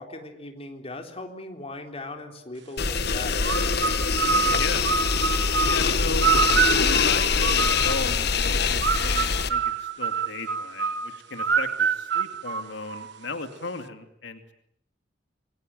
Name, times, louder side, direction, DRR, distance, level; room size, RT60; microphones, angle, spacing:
voice 1, 0.0-3.7, left 2 dB, 35° left, 4 dB, 3.8 m, -38 dB
sound 1, 2.8-9.5, left 5 dB, 60° left, 1.6 m, -23 dB
sound 2, 3.4-8.2 8.8-13.3, right 6 dB, 65° right, 1.3 m, -26 dB
voice 2, 4.5-4.8 5.7-6.3 6.7-14.5, left 3 dB, 80° left, 7 dB, 2.5 m, -36 dB
28.0 x 23.5 x 9.1 m, 0.72 s
head